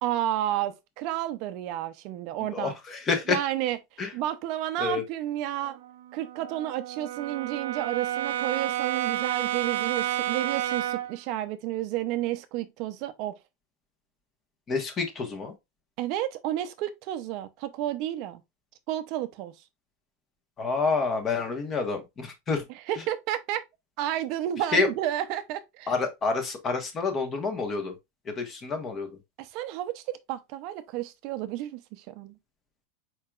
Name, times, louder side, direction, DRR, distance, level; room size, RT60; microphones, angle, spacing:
voice 1, 0.0-2.7 3.3-3.8 4.1-5.8 6.1-13.4 16.0-18.4 18.9-19.5 22.9-23.6 24.0-25.9 29.4-32.4, right 13 dB, 50° right, 0.6 m, -31 dB
voice 2, 2.5-3.4 4.0-4.1 4.8-5.0 14.7-15.5 20.6-22.6 24.7-24.9 25.9-27.9 28.2-29.1, left 4 dB, 25° left, 1.2 m, -28 dB
Brass instrument, 5.6-11.2, right 12 dB, 85° right, 0.7 m, -31 dB
4.7 x 4.7 x 2.4 m
supercardioid pair, 150°, 0 cm